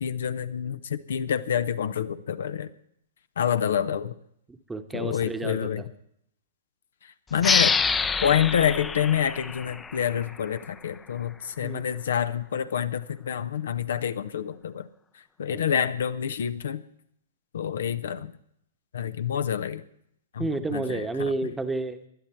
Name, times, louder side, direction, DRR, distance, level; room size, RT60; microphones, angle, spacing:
voice 1, 0.0-2.7 3.4-4.1 4.9-5.8 7.0-7.8 8.2-14.9 15.4-16.8 17.5-18.3 18.9-19.8 20.3-21.3, left 8 dB, 65° left, 13 dB, 0.7 m, -27 dB
voice 2, 4.5-5.9 11.6-11.8 15.5-15.6 20.4-22.1, right 3 dB, 10° right, 9 dB, 1.1 m, -31 dB
sound 1, 7.4-10.7, left 5 dB, 15° left, 0.6 m, -27 dB
20.0 x 12.0 x 4.5 m, 0.72 s
figure-of-eight pair, 110°, 0 cm